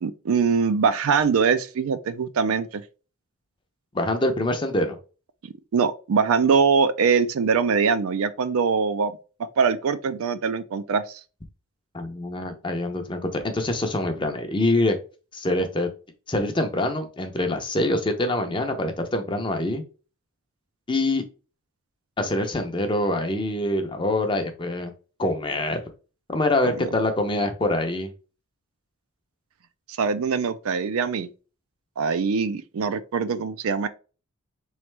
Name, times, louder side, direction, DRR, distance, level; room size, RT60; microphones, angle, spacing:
voice 1, 0.0-2.8 5.7-9.2 9.6-11.2 30.0-31.3 32.0-33.9, right 5 dB, 75° right, 0.4 m, -22 dB
voice 2, 3.9-5.0 11.9-15.0 15.3-15.9 16.3-19.8 20.9-21.2 22.2-24.9 25.2-25.8 26.3-28.1, left 1 dB, 20° left, 0.6 m, -25 dB
3.9 x 3.2 x 3.2 m
head